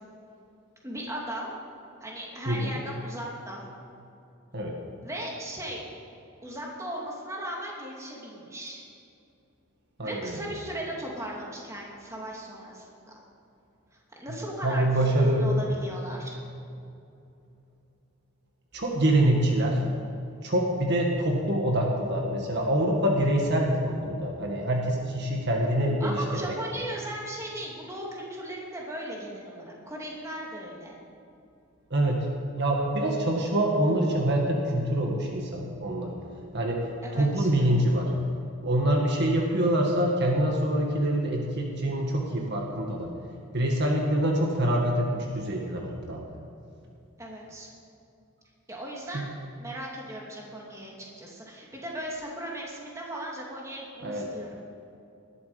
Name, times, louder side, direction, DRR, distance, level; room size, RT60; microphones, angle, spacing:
voice 1, 0.8-1.5 2.0-3.6 5.0-5.8 6.4-8.8 10.0-12.8 14.2-16.4 26.0-31.0 37.0-37.5 47.2-47.7 48.7-49.3 49.6-54.5, right 1 dB, 15° right, -3 dB, 2.7 m, -37 dB
voice 2, 2.5-2.8 4.5-4.8 10.0-10.4 14.6-15.6 18.7-19.8 20.4-26.1 26.4-26.6 31.9-32.3 32.5-36.1 36.5-36.8 37.1-38.1 38.6-43.1 43.5-46.2 49.1-49.2 54.0-54.3, right 1 dB, 55° right, 0 dB, 1.8 m, -25 dB
19.0 x 12.0 x 5.1 m, 2.6 s
head